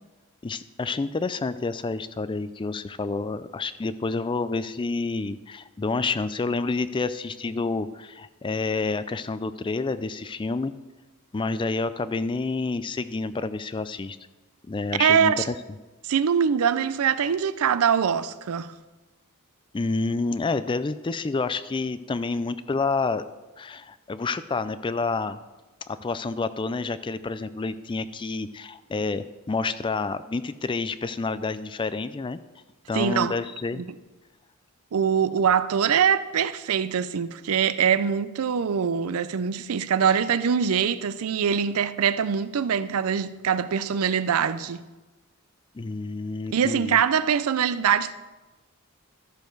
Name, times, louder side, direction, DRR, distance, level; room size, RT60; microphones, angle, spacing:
voice 1, 0.4-10.7 11.3-14.2 14.7-15.5 19.7-23.2 23.6-25.4 25.9-32.4 32.9-33.8 45.7-47.0, left 3 dB, 20° left, 0.3 m, -29 dB
voice 2, 15.0-15.5 16.0-18.7 32.9-33.3 33.8-33.9 34.9-44.8 46.5-48.1, right 7 dB, 75° right, 0.5 m, -23 dB
13.0 x 6.7 x 4.6 m
head